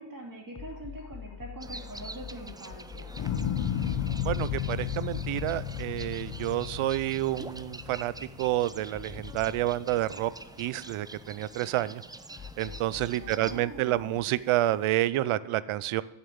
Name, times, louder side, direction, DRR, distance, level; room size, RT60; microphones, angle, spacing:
voice 1, 0.0-3.1 13.1-14.2, right 1 dB, 40° right, -2 dB, 2.9 m, -44 dB
sound 1, 0.5-6.9 7.3-7.4 8.9-11.4 12.4-15.1, left 7 dB, 35° left, 0.7 m, -47 dB
sound 2, 1.6-13.6, right 2 dB, 10° right, 0.5 m, -46 dB
sound 3, 3.2-9.5 9.9-10.5, left 9 dB, 80° left, 1.0 m, -33 dB
voice 2, 4.2-8.1 8.4-10.3 10.6-12.0 12.6-16.0, right 15 dB, 85° right, 18 dB, 0.6 m, -29 dB
9.0 x 7.1 x 6.9 m, 1.1 s
cardioid pair, 70°, 48 cm